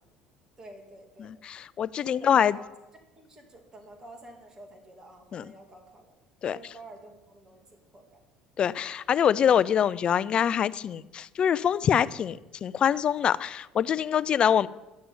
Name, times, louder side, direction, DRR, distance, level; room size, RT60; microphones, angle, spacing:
voice 1, 0.6-1.3 2.0-2.7 3.2-6.1 6.4-8.2, right 2 dB, 25° right, 2.6 m, -49 dB
voice 2, 1.2-2.5 5.3-5.4 6.4-6.6 8.6-14.7, left 8 dB, 45° left, 0.4 m, -24 dB
11.5 x 6.7 x 8.8 m
supercardioid pair, 90°, 2 cm